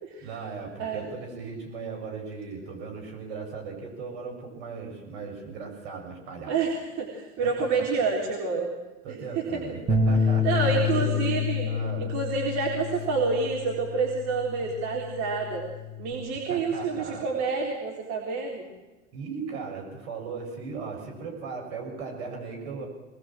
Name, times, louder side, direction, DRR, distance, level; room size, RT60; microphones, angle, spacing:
voice 1, 0.2-6.6 7.4-7.8 9.0-11.4 11.7-12.1 16.5-17.2 19.1-22.9, right 5 dB, 65° right, 0 dB, 6.9 m, -37 dB
voice 2, 6.5-8.7 9.3-9.6 10.4-11.7 12.0-15.6 16.0-18.7, right 4 dB, 45° right, -2 dB, 4.2 m, -28 dB
sound 1, 9.9-16.1, left 5 dB, 30° right, 6.5 m, -28 dB
24.5 x 20.0 x 7.6 m, 1.2 s
hypercardioid pair, 80°, 36 cm